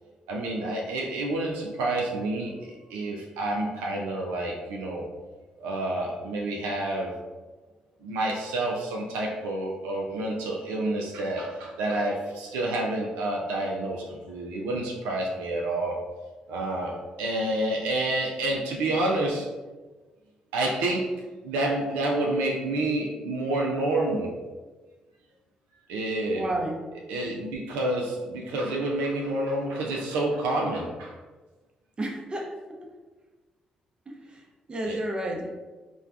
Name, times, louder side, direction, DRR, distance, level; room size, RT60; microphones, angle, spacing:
voice 1, 0.3-5.1 5.6-7.2 8.0-16.0 16.5-19.5 20.5-21.1 21.4-24.3 25.9-26.4 27.1-31.2 34.8-35.0, right 2 dB, 80° right, -1 dB, 0.3 m, -29 dB
voice 2, 26.3-26.8 32.0-32.8 34.3-34.4 34.7-35.5, right 1 dB, 30° right, 1 dB, 0.6 m, -31 dB
3.2 x 2.2 x 2.4 m, 1.3 s
hypercardioid pair, 45°, 3 cm